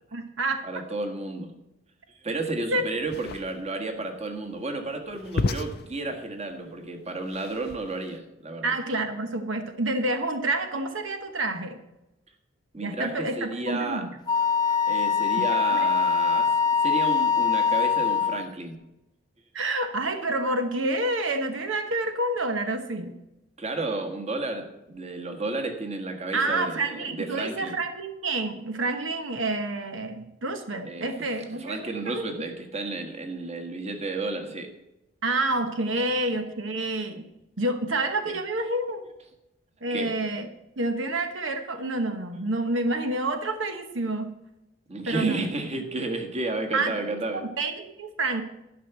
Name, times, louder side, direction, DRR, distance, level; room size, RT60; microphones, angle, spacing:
voice 1, 0.1-0.6 2.7-2.9 8.6-11.8 12.8-14.1 15.4-15.9 19.5-23.2 26.3-31.9 32.1-32.2 35.2-37.2 37.6-39.0 39.8-40.5 40.8-44.3 45.1-45.5 46.7-48.4, right 2 dB, 85° right, 6 dB, 1.1 m, -28 dB
voice 2, 0.6-1.5 2.2-8.7 12.7-14.1 14.9-16.6 16.8-18.8 23.6-27.7 30.8-31.1 31.6-34.7 38.2-38.4 39.9-40.2 44.9-47.4, right 2 dB, 35° right, 4 dB, 1.6 m, -32 dB
sound 1, 3.0-8.2, left 3 dB, 55° left, 0.5 m, -34 dB
Wind instrument woodwind instrument, 14.3-18.5, left 6 dB, 20° left, 0.8 m, -23 dB
12.0 x 5.8 x 8.0 m, 0.92 s
head